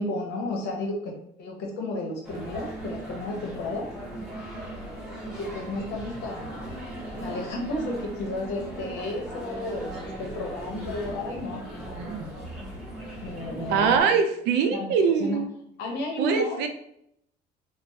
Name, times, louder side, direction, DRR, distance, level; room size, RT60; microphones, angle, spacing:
voice 1, 0.0-3.9 5.2-6.6 7.1-11.6 13.2-14.0 14.7-14.9 15.2-15.4 15.8-16.6, left 2 dB, 85° left, 0 dB, 0.8 m, -33 dB
sound 1, 2.2-14.0, right 1 dB, 5° right, 0.9 m, -38 dB
voice 2, 12.0-12.3 13.7-15.5 16.2-16.7, right 6 dB, 85° right, 6 dB, 0.4 m, -23 dB
3.1 x 2.1 x 2.7 m, 0.72 s
cardioid pair, 110°, 17 cm